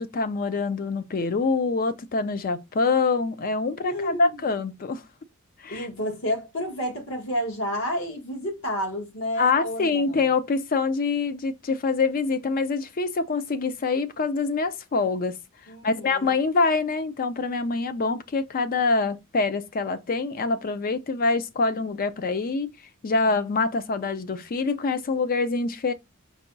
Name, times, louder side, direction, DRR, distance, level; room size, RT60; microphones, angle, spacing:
voice 1, 0.0-5.0 5.6-5.9 9.4-15.4 15.8-22.7 23.0-25.9, left 4 dB, 40° left, 0.4 m, -25 dB
voice 2, 3.8-4.4 5.7-10.3 15.7-16.4, equal, 65° left, 1.5 m, -30 dB
4.8 x 2.2 x 3.9 m
head